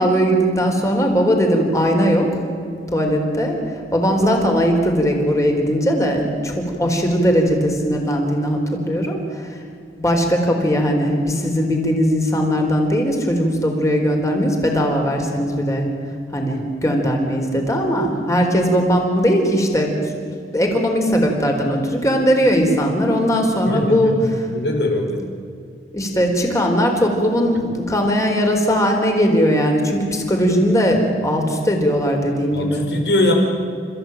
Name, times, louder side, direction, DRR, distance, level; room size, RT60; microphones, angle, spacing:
voice 1, 0.0-2.4 2.9-3.6 3.9-9.6 10.0-15.9 16.3-19.9 20.5-24.2 25.9-32.9, equal, 20° left, 2 dB, 4.1 m, -19 dB
voice 2, 23.7-24.1 24.5-25.2 32.5-33.3, left 1 dB, 75° left, 2 dB, 5.1 m, -21 dB
30.0 x 15.0 x 9.0 m, 2.4 s
head